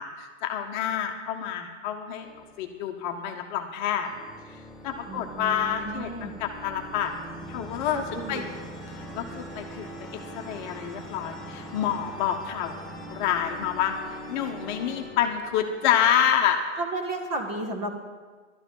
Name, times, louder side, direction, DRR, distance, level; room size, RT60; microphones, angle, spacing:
voice 1, 0.0-2.3 2.6-4.1 4.8-7.1 7.5-8.4 8.9-12.7 13.1-13.9 14.3-16.6, left 9 dB, 35° left, 3 dB, 1.1 m, -28 dB
sound 1, 2.2-3.4 4.0-16.7, right 1 dB, ahead, 1.7 m, -42 dB
voice 2, 5.1-6.3 7.9-8.5 16.8-17.9, right 2 dB, 30° right, 3 dB, 1.8 m, -33 dB
12.5 x 10.0 x 5.5 m, 1.4 s
hypercardioid pair, 135°, 38 cm